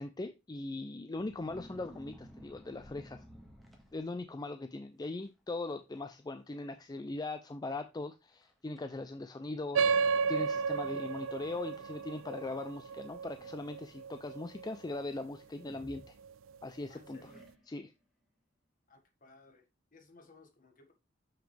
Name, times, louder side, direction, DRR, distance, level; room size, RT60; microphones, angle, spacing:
voice 1, 0.0-3.2 3.9-16.2 16.6-17.3 17.7-17.9, left 2 dB, 20° left, 0.4 m, -40 dB
sound 1, 1.1-4.4 5.0-5.3 5.6-6.0 6.3-6.4 7.2-7.3 7.8-7.9 8.4-8.8 9.7-9.8 12.6-13.6 15.6-16.7 17.2-17.9, equal, ahead, 1.7 m, -55 dB
sound 2, 9.7-14.7, right 5 dB, 80° right, 0.4 m, -32 dB
voice 2, 16.9-17.4 18.9-19.6 19.9-20.9, left 3 dB, 45° left, 1.7 m, -59 dB
7.1 x 6.2 x 3.3 m
head